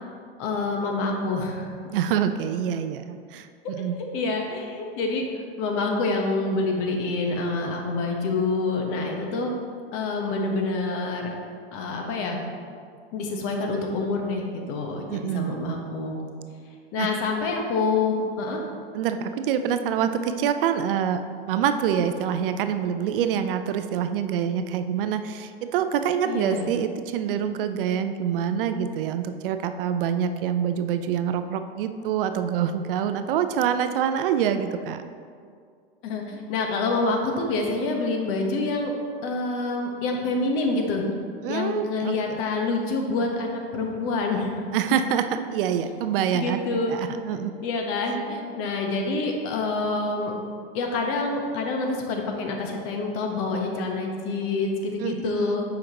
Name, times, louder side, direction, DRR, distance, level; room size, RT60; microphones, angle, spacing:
voice 1, 0.4-1.7 4.0-9.5 9.9-11.4 11.7-12.4 13.1-16.2 16.9-18.6 26.2-26.7 36.0-38.9 39.2-41.1 41.5-44.7 46.3-46.9 47.3-50.3 50.7-55.8, left 3 dB, 45° left, 2 dB, 1.1 m, -27 dB
voice 2, 1.9-4.0 15.1-15.8 17.0-17.1 18.9-21.2 21.5-35.0 41.4-42.1 44.7-46.6 46.9-47.5 55.0-55.6, right 8 dB, 60° right, 9 dB, 0.5 m, -26 dB
7.6 x 5.2 x 2.9 m, 2.2 s
hypercardioid pair, 110°, 31 cm